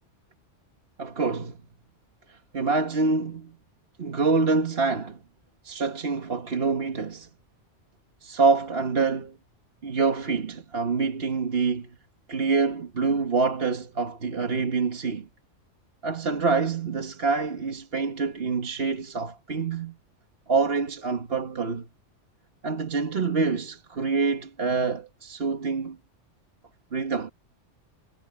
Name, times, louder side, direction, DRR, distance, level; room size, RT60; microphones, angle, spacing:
voice 1, 1.0-1.6 2.3-3.6 4.0-5.2 5.6-7.3 8.2-9.4 9.8-11.9 12.3-15.3 16.0-20.0 20.5-21.9 22.6-26.0 26.9-27.3, right 4 dB, 55° right, 1.7 m, -26 dB
omnidirectional pair, 1.3 m